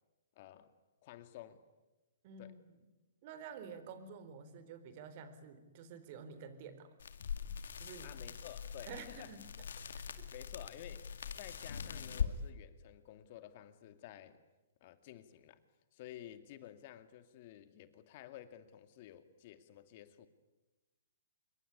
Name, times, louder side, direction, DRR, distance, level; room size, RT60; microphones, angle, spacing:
voice 1, 0.4-0.7 1.0-1.6 2.4-2.6 8.0-9.3 10.3-14.4 14.8-15.6 15.9-20.3, left 12 dB, 45° left, 10 dB, 2.3 m, -53 dB
voice 2, 2.2-2.7 3.2-6.9 7.8-8.2 8.9-9.4 9.9-10.3, right 6 dB, 45° right, 12 dB, 3.9 m, -50 dB
sound 1, 7.0-12.3, left 7 dB, 75° left, 2.3 m, -42 dB
27.0 x 22.5 x 9.8 m, 1.1 s
hypercardioid pair, 140°, 0 cm